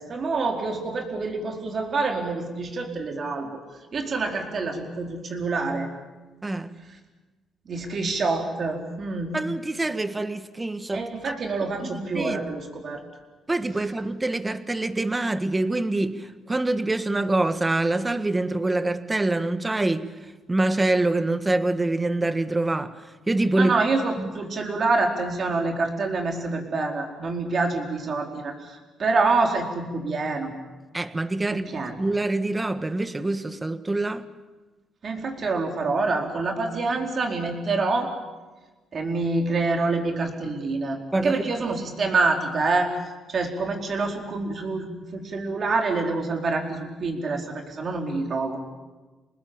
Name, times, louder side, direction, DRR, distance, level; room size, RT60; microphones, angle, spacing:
voice 1, 0.0-3.6 3.9-5.9 7.6-9.4 10.9-13.0 23.6-30.5 31.7-31.9 35.0-38.1 38.9-42.9 43.3-48.6, right 3 dB, 50° right, 4.5 m, -26 dB
voice 2, 9.3-11.4 11.8-12.4 13.5-23.7 24.2-24.3 30.9-34.2 41.1-41.4, right 2 dB, 20° right, 1.5 m, -25 dB
27.0 x 20.0 x 8.8 m
cardioid pair, 90°, 0 cm